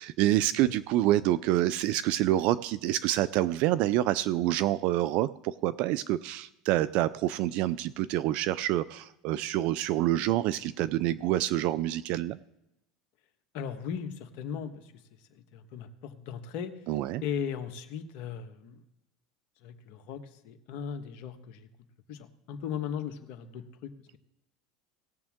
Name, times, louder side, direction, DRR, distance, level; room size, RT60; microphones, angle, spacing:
voice 1, 0.0-12.4 16.9-17.2, right 14 dB, 60° right, 17 dB, 0.4 m, -27 dB
voice 2, 13.5-14.8 15.3-16.7 17.2-18.8 19.6-21.7 22.1-24.2, left 7 dB, 65° left, 6 dB, 1.4 m, -37 dB
18.5 x 7.2 x 3.7 m, 0.86 s
supercardioid pair, 100°, 2 cm